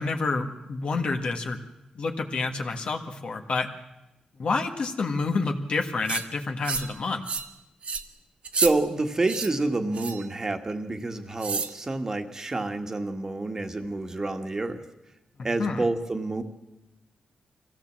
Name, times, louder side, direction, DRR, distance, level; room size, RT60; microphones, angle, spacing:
voice 1, 0.0-1.6 2.0-3.7 4.4-7.2 15.6-15.8, left 3 dB, 55° left, 3 dB, 1.6 m, -28 dB
sound 1, 6.1-6.2 6.6-6.9 7.3-7.5 7.8-8.0 8.4-8.7 9.2-9.5 9.9-10.3 11.4-11.7, right 5 dB, 60° right, 1.3 m, -29 dB
voice 2, 8.5-14.8 15.4-16.4, right 2 dB, 25° right, 6 dB, 1.6 m, -28 dB
23.5 x 16.5 x 7.5 m, 0.95 s
wide cardioid pair, 125°, 2 cm